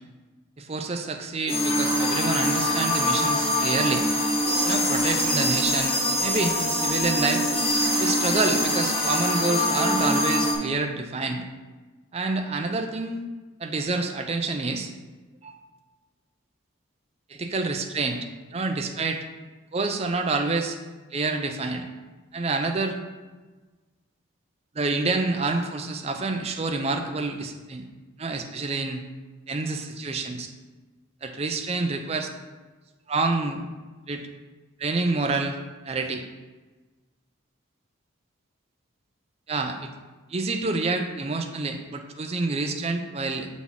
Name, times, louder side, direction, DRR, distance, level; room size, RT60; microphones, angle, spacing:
voice 1, 0.6-4.1 4.6-7.5 8.0-11.5 12.1-13.2 13.6-14.9 15.4-15.6 17.3-18.3 18.5-19.2 19.7-20.8 21.1-21.8 22.3-23.0 24.7-27.9 28.2-29.0 29.5-30.5 31.2-32.3 33.1-33.6 34.1-34.2 34.8-35.6 35.8-36.2 39.5-39.9 40.3-43.5, right 3 dB, 30° right, 4 dB, 0.4 m, -27 dB
sound 1, 1.5-10.5, left 1 dB, 30° left, 0.9 m, -24 dB
7.1 x 4.0 x 3.7 m, 1.3 s
head